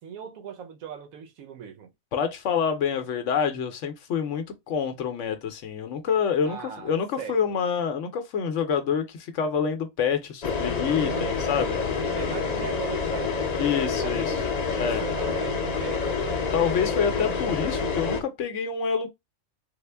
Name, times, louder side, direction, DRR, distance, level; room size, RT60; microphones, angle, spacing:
voice 1, 0.0-1.9 6.5-7.6 10.9-11.7 12.0-14.5 14.7-16.4, right 7 dB, 80° right, 1.1 m, -38 dB
voice 2, 2.1-11.8 13.6-14.2 14.8-15.0 16.5-19.1, left 7 dB, 65° left, 0.9 m, -27 dB
sound 1, 10.4-18.2, left 5 dB, 45° left, 0.5 m, -28 dB
3.5 x 2.0 x 3.3 m
omnidirectional pair, 1.4 m